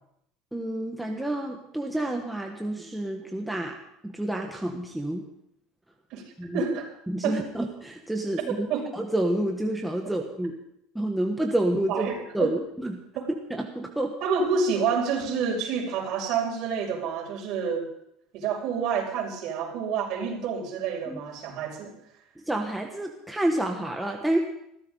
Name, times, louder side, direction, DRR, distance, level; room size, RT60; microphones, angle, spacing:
voice 1, 0.5-3.8 4.0-5.2 6.4-6.6 7.1-8.7 8.9-10.5 10.9-12.1 12.3-13.0 13.5-14.1 21.1-21.2 22.4-24.4, right 1 dB, 5° right, 1 dB, 1.4 m, -29 dB
voice 2, 6.5-6.9 7.2-7.4 8.7-8.9 11.9-12.5 13.1-13.3 14.2-17.9 18.3-21.9, right 6 dB, 55° right, -1 dB, 6.6 m, -28 dB
21.5 x 15.5 x 4.0 m, 0.76 s
cardioid pair, 135°, 0 cm